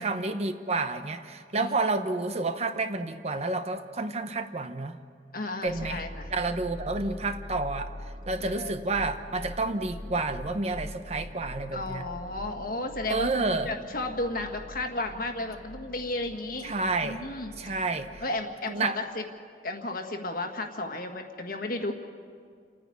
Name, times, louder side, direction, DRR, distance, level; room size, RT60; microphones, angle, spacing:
voice 1, 0.0-5.0 5.6-6.0 6.3-7.9 8.3-12.1 13.1-13.7 16.6-17.2 17.6-18.2 18.7-19.0, right 3 dB, 35° right, 9 dB, 0.9 m, -30 dB
voice 2, 5.3-6.3 7.0-7.3 8.4-8.7 11.7-16.7 17.0-17.7 18.2-19.2 19.6-21.9, left 2 dB, 55° left, 4 dB, 1.7 m, -34 dB
sound 1, 5.7-18.4, left 1 dB, 55° right, 2.5 m, -43 dB
29.0 x 9.9 x 9.4 m, 2.1 s
head